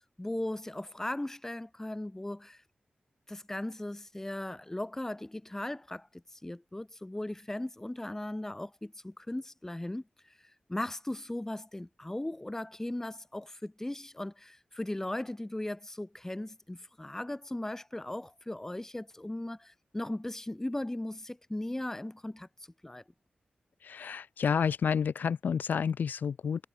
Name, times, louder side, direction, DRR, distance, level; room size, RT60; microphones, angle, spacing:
voice 1, 0.2-2.6 3.3-10.3 10.7-22.5 22.8-23.0, left 1 dB, 15° left, 0.6 m, -38 dB
voice 2, 23.8-26.6, left 7 dB, 85° left, 0.6 m, -30 dB
cardioid pair, 65°, 3 cm